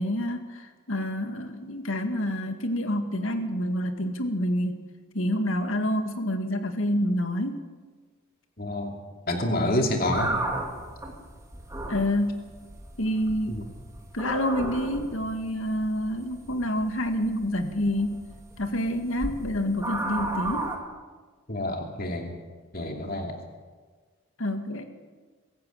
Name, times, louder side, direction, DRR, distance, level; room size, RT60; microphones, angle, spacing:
voice 1, 0.0-4.8 5.1-7.6 11.9-12.4 13.0-13.6 14.1-18.2 18.6-20.7 24.4-24.9, equal, 75° left, 7 dB, 2.0 m, -28 dB
voice 2, 8.6-9.0 9.3-10.3 13.5-13.6 21.5-22.3 22.7-23.4, left 1 dB, 45° left, 3 dB, 2.6 m, -28 dB
sound 1, 10.1-20.8, right 2 dB, 15° right, 2.5 m, -35 dB
23.5 x 14.5 x 8.9 m, 1.4 s
head